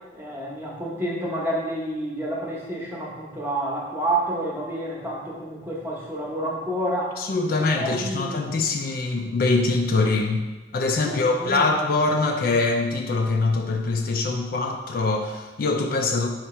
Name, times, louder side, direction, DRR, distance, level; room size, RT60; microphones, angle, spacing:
voice 1, 0.1-7.2 7.5-8.4 11.0-11.9, right 1 dB, 10° right, -4 dB, 0.8 m, -29 dB
voice 2, 7.2-10.5 10.7-16.3, left 3 dB, 50° left, 3 dB, 0.3 m, -23 dB
4.4 x 2.8 x 4.2 m, 1.2 s
head